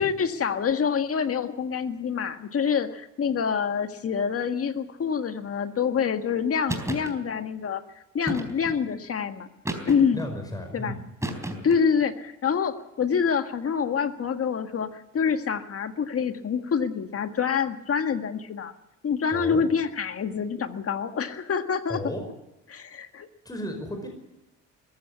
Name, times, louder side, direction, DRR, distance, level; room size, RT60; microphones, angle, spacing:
voice 1, 0.0-7.8 8.1-9.5 9.8-10.2 10.7-11.0 11.6-18.7 19.0-22.0 22.7-23.3, left 6 dB, 50° left, 8 dB, 1.8 m, -26 dB
sound 1, 6.7-7.1 8.3-8.8 9.7-10.3 11.2-11.9, right 1 dB, 10° right, 4.0 m, -32 dB
voice 2, 10.1-11.0 11.5-11.7 19.3-19.7 21.9-22.2 23.4-24.1, equal, 10° left, 4 dB, 5.2 m, -34 dB
20.5 x 15.5 x 8.3 m, 0.96 s
cardioid pair, 90°, 30 cm